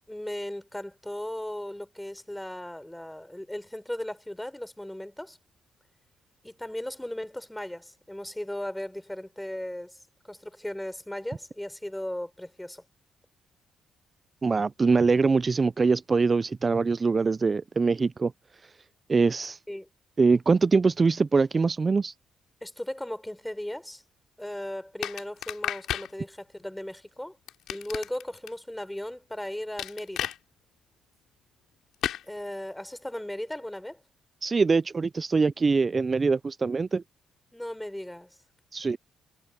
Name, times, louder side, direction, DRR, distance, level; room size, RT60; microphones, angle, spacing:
voice 1, 0.0-5.4 6.4-10.0 10.2-12.8 19.7-19.9 22.6-24.0 24.4-27.4 27.7-30.3 32.3-34.0 37.5-38.4, left 1 dB, 5° left, 3.7 m, -37 dB
voice 2, 14.4-18.3 19.1-19.6 20.2-22.1 34.4-37.0 38.7-39.0, right 4 dB, 30° right, 0.3 m, -23 dB
sound 1, 25.0-26.1 27.5-28.5 29.8-30.4 32.0-32.2, left 11 dB, 80° left, 3.6 m, -32 dB
cardioid pair, 90°, 0 cm